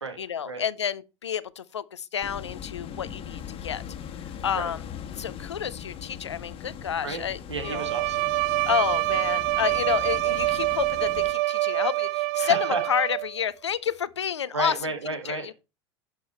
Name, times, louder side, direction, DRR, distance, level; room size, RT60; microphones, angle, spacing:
voice 1, 0.2-3.8 4.4-4.8 5.2-7.9 8.6-14.7 15.2-15.5, left 8 dB, 85° left, 0.5 m, -29 dB
sound 1, 2.2-11.3, left 8 dB, 40° left, 1.3 m, -40 dB
voice 2, 7.5-8.3 12.4-12.8 14.5-15.5, right 3 dB, 90° right, 1.7 m, -32 dB
Bowed string instrument, 7.6-13.4, right 20 dB, 55° right, 0.5 m, -26 dB
11.0 x 5.4 x 4.2 m
figure-of-eight pair, 80°, 14 cm